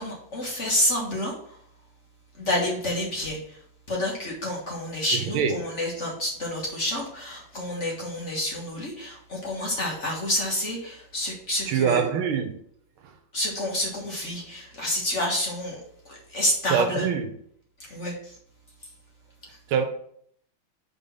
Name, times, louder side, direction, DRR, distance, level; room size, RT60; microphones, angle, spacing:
voice 1, 0.0-1.6 2.3-3.6 3.9-12.0 13.3-17.1 17.8-18.4 19.5-19.6, left 1 dB, 40° left, 1.5 m, -29 dB
voice 2, 11.7-12.5 13.0-13.1 16.7-17.3 19.7-19.9, right 7 dB, 80° right, 1.7 m, -24 dB
5.4 x 4.0 x 5.5 m
omnidirectional pair, 2.3 m